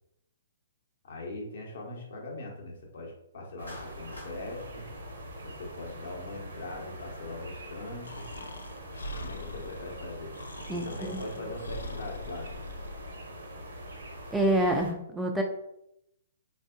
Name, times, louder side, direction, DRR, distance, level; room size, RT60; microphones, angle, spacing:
voice 1, 1.0-4.9 5.4-8.2 9.2-10.3 10.7-12.5, left 2 dB, 60° left, -1 dB, 1.0 m, -41 dB
sound 1, 3.6-14.9, right 1 dB, 70° right, 0.9 m, -44 dB
Clapping, 3.7-4.4, left 1 dB, 90° left, 1.1 m, -45 dB
Breathing, 8.0-13.2, left 1 dB, 75° left, 0.4 m, -42 dB
voice 2, 10.7-11.2 14.3-15.4, right 1 dB, 5° right, 1 dB, 0.3 m, -27 dB
3.4 x 2.6 x 2.4 m, 0.80 s
figure-of-eight pair, 125°, 0 cm